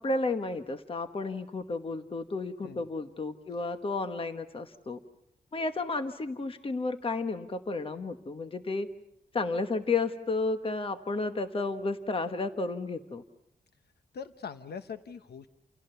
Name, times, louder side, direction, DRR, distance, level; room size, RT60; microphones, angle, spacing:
voice 1, 0.0-5.0 5.5-8.9 9.3-13.2, left 3 dB, 35° left, 8 dB, 1.2 m, -32 dB
voice 2, 14.1-15.5, left 6 dB, 90° left, 10 dB, 1.0 m, -42 dB
29.0 x 29.0 x 6.9 m, 0.80 s
wide cardioid pair, 145°, 16 cm